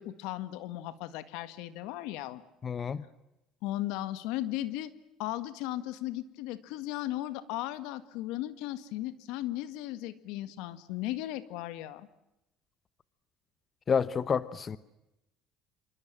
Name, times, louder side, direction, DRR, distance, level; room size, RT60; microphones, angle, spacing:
voice 1, 0.0-2.4 3.6-4.9 5.2-12.1, left 15 dB, 80° left, 1.8 m, -36 dB
voice 2, 2.6-3.0 13.9-14.8, left 6 dB, 35° left, 1.0 m, -29 dB
27.0 x 25.5 x 7.4 m
supercardioid pair, 105°, 0 cm